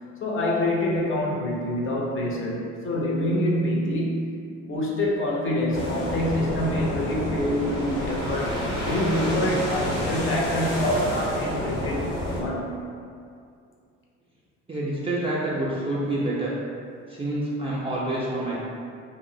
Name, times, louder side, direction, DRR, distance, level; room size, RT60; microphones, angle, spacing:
voice 1, 0.2-4.3 4.6-12.8, left 1 dB, 35° left, -3 dB, 0.5 m, -26 dB
sound 1, 5.7-12.4, equal, 80° left, 0.8 m, -28 dB
voice 2, 14.7-16.5 17.1-18.6, right 1 dB, 15° right, -7 dB, 0.4 m, -27 dB
2.3 x 2.0 x 2.6 m, 2.3 s
hypercardioid pair, 60°, 36 cm